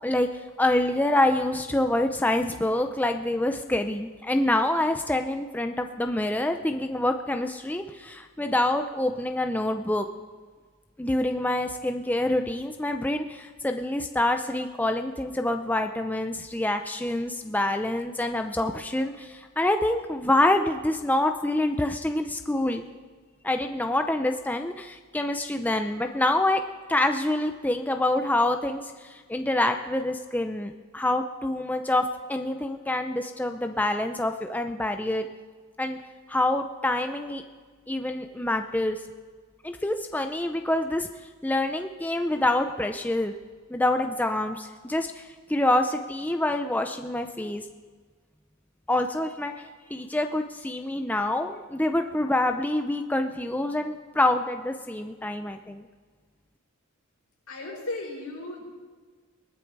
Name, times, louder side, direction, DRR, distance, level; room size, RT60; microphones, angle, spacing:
voice 1, 0.6-10.1 11.0-22.9 23.4-26.6 26.9-35.3 35.8-36.0 36.3-37.4 37.9-39.0 39.6-41.1 41.4-43.3 43.7-47.6 48.9-49.5 49.9-55.9, left 1 dB, 10° left, 5 dB, 0.5 m, -26 dB
voice 2, 57.5-58.7, left 2 dB, 80° left, -2 dB, 5.6 m, -35 dB
20.5 x 12.0 x 4.7 m, 1.5 s
head